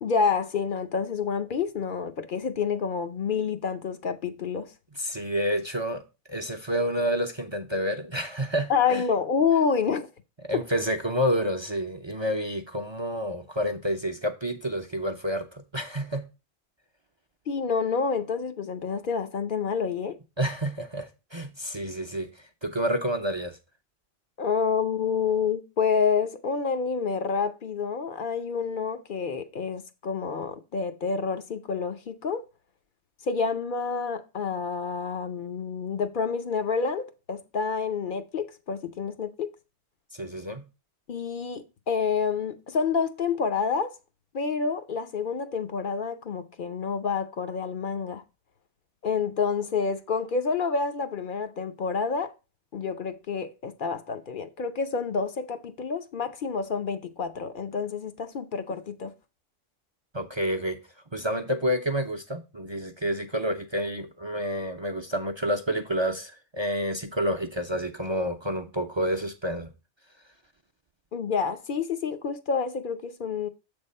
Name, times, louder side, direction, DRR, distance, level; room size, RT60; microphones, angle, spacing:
voice 1, 0.0-4.7 8.7-10.1 17.5-20.2 24.4-32.4 33.2-39.5 41.1-43.9 44.3-48.2 49.0-52.3 52.7-59.1 71.1-73.5, left 5 dB, 55° left, 0.7 m, -28 dB
voice 2, 5.0-6.0 6.3-9.0 10.5-16.3 20.4-23.6 40.1-40.7 60.1-60.8 61.1-69.7, equal, 35° right, 0.5 m, -29 dB
7.4 x 3.5 x 5.4 m
omnidirectional pair, 1.2 m